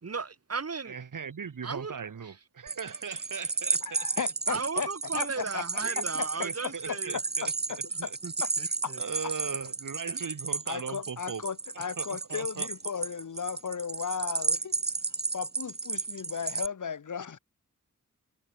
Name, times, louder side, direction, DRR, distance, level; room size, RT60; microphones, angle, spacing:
voice 1, 0.0-1.0 1.6-2.4 4.5-7.2 7.9-9.0 10.1-10.2, right 5 dB, 50° right, 2.3 m, -36 dB
voice 2, 0.9-4.9 5.8-6.1 6.4-7.5 8.0-8.2 9.0-11.4 11.8-12.7, right 6 dB, 75° right, 2.1 m, -39 dB
sound 1, 2.7-16.7, right 4 dB, 30° right, 1.2 m, -33 dB
voice 3, 3.8-4.9 5.1-5.6 6.0-8.1 8.4-8.5 8.8-8.9 9.2-9.3 10.7-14.8 15.3-17.4, left 6 dB, 70° left, 1.6 m, -36 dB
wide cardioid pair, 115°, 32 cm